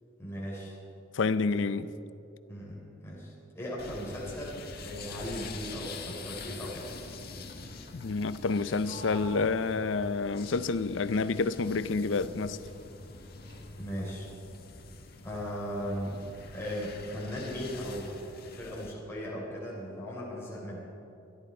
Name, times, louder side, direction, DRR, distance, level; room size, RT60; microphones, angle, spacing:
voice 1, 0.2-0.7 1.5-1.6 2.5-6.8 13.8-14.3 15.2-16.2 16.5-18.2 18.5-20.8, equal, 15° left, 3.9 m, -37 dB
voice 2, 1.1-1.9 7.9-12.6, left 4 dB, 75° left, 0.6 m, -29 dB
sound 1, 3.8-18.9, left 3 dB, 55° left, 1.4 m, -45 dB
Sliding door, 8.8-12.4 12.7-14.0, right 3 dB, 85° right, 4.2 m, -51 dB
25.0 x 12.0 x 4.4 m
head